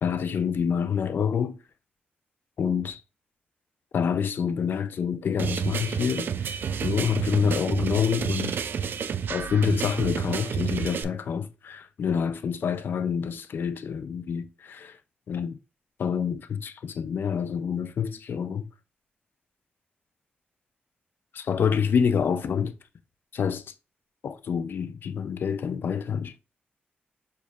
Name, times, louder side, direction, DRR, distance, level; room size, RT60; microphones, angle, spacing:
voice 1, 0.0-1.6 2.6-3.0 3.9-8.6 9.3-15.0 15.3-15.6 16.0-18.7 21.3-22.8 23.3-23.7 24.2-26.4, left 7 dB, 65° left, 0.4 m, -27 dB
sound 1, 5.4-11.0, right 7 dB, 65° right, 0.3 m, -29 dB
6.5 x 2.3 x 2.7 m
cardioid pair, 90°, 4 cm